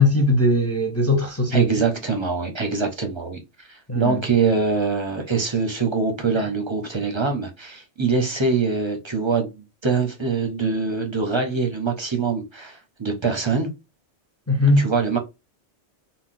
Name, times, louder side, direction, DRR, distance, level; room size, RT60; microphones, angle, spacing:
voice 1, 0.0-1.7 3.9-4.2 6.3-6.4 14.5-14.9, left 2 dB, 20° left, 0.4 m, -19 dB
voice 2, 1.5-13.7 14.8-15.2, right 4 dB, 30° right, 0.6 m, -24 dB
3.7 x 2.2 x 2.5 m
omnidirectional pair, 1.2 m